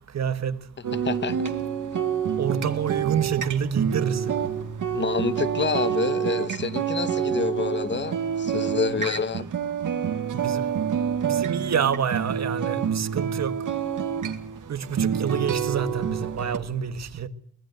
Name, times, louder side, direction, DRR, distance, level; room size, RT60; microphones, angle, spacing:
voice 1, 0.1-0.6 2.4-4.4 10.3-10.6 11.2-13.5 14.7-17.3, right 7 dB, 55° right, 1.6 m, -27 dB
sound 1, 0.8-16.6, right 8 dB, 70° right, 2.3 m, -27 dB
voice 2, 0.9-1.5 4.9-9.5, left 5 dB, 35° left, 1.2 m, -28 dB
24.0 x 19.0 x 8.0 m
wide cardioid pair, 120°, 32 cm